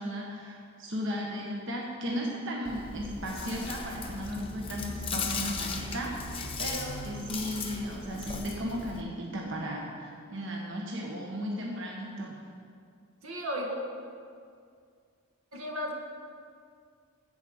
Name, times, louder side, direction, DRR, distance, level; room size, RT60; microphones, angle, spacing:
voice 1, 0.0-6.3 6.6-12.4, equal, 60° right, -2 dB, 1.3 m, -35 dB
Chewing mastication, 2.6-9.0, left 4 dB, 25° left, 0.8 m, -37 dB
voice 2, 13.2-13.8 15.5-15.9, equal, 80° right, 0 dB, 1.6 m, -34 dB
15.0 x 5.0 x 6.9 m, 2.2 s
head